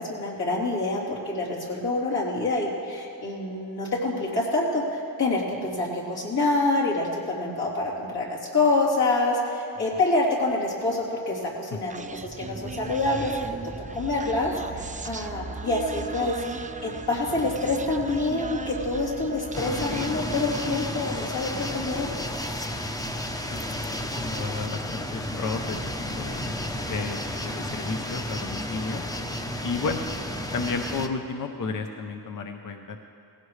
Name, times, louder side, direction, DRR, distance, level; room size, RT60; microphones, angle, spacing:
voice 1, 0.0-13.3 13.9-22.2, left 2 dB, 75° left, -5 dB, 3.5 m, -27 dB
Human voice, 11.9-21.4, right 4 dB, 20° right, 0.4 m, -37 dB
sound 1, 19.5-31.1, left 1 dB, 10° left, 0.7 m, -32 dB
voice 2, 23.5-25.8 26.1-26.4 26.9-29.0 29.6-30.1 30.5-33.0, left 4 dB, 55° left, 5 dB, 0.7 m, -33 dB
18.5 x 16.0 x 3.2 m, 2.9 s
wide cardioid pair, 110°, 38 cm